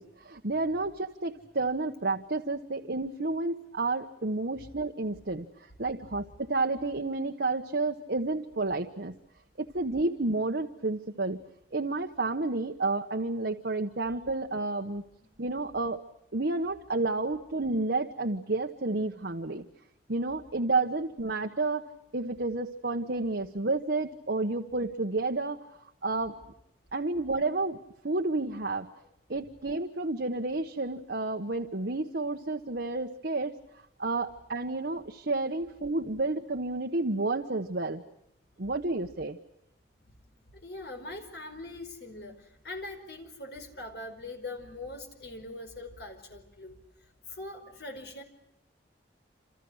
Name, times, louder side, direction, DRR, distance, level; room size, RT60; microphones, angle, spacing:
voice 1, 0.0-9.2 9.6-11.4 11.7-15.0 15.4-16.0 16.3-19.6 20.1-21.8 22.1-25.6 26.0-26.4 26.9-27.8 28.0-28.9 29.3-33.5 34.0-38.0 38.6-39.4, right 2 dB, 65° right, 4 dB, 1.2 m, -30 dB
voice 2, 40.5-46.8 47.2-48.2, left 2 dB, 65° left, 5 dB, 5.1 m, -42 dB
28.0 x 28.0 x 6.4 m, 0.78 s
head